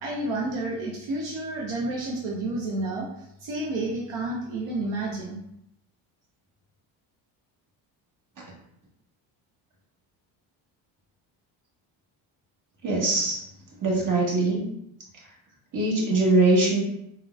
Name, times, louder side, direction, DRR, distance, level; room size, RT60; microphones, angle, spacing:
voice 1, 0.0-5.4, right 2 dB, 75° right, -2 dB, 0.8 m, -30 dB
voice 2, 12.8-13.4 13.8-14.6 15.7-16.8, right 2 dB, 40° right, -3 dB, 1.2 m, -22 dB
3.7 x 2.2 x 2.3 m, 0.75 s
supercardioid pair, 75°, 49 cm